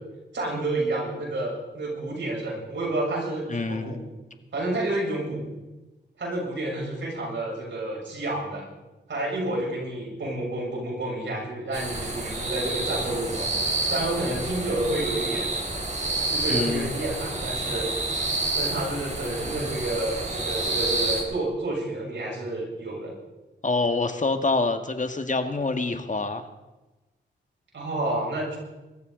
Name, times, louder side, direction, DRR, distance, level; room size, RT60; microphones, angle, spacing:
voice 1, 0.3-4.0 4.5-5.5 6.2-8.6 9.1-13.5 13.9-15.5 16.3-17.9 18.5-23.1 27.7-28.6, right 2 dB, 80° right, -2 dB, 7.0 m, -29 dB
voice 2, 3.5-4.0 16.5-16.9 23.6-26.4, left 3 dB, 40° left, 7 dB, 1.8 m, -26 dB
sound 1, 11.7-21.2, right 2 dB, 40° right, 4.3 m, -29 dB
24.0 x 14.0 x 3.9 m, 1.1 s
cardioid pair, 60°, 19 cm